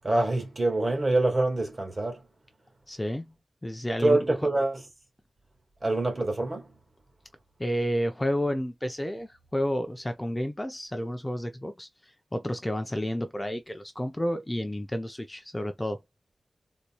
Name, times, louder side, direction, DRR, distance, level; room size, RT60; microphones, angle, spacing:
voice 1, 0.0-2.2 4.0-4.8 5.8-6.7, right 2 dB, 35° right, 1.9 m, -25 dB
voice 2, 2.9-3.3 3.6-4.4 7.6-11.9 12.3-16.0, equal, 15° left, 0.6 m, -30 dB
4.1 x 3.1 x 2.2 m
wide cardioid pair, 85°, 0 cm